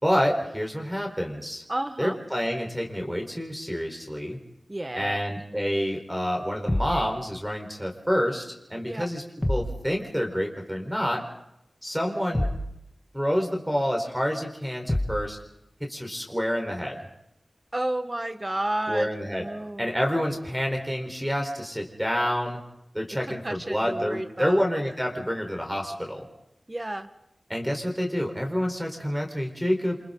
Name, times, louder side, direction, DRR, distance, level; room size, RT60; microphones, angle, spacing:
voice 1, 0.0-1.6 2.0-4.4 5.0-9.2 9.5-11.3 11.8-12.5 13.1-15.4 15.8-17.0 18.9-19.5 19.8-22.6 22.9-26.3 27.5-30.0, equal, 5° right, 2 dB, 4.4 m, -28 dB
voice 2, 1.7-2.2 4.7-5.2 8.9-9.1 17.7-19.1 19.4-19.9 23.2-24.6 26.7-27.1, right 1 dB, 25° right, 8 dB, 1.6 m, -31 dB
sound 1, 6.7-7.0 9.4-9.8 12.3-12.7 14.9-15.3, left 1 dB, 20° left, 2.6 m, -26 dB
30.0 x 26.5 x 4.0 m, 0.85 s
wide cardioid pair, 80°, 0 cm